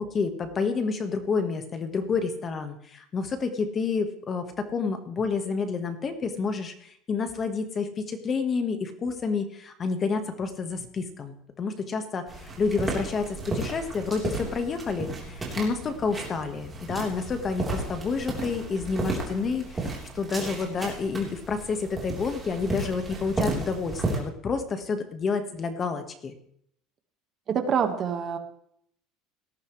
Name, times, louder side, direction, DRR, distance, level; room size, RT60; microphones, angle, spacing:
voice 1, 0.0-26.3, left 4 dB, 25° left, 8 dB, 1.4 m, -29 dB
sound 1, 12.3-24.2, right 2 dB, 15° right, 3.7 m, -34 dB
voice 2, 27.5-28.4, right 7 dB, 30° right, 7 dB, 1.5 m, -26 dB
18.0 x 13.5 x 3.2 m, 0.68 s
cardioid pair, 160°, 0 cm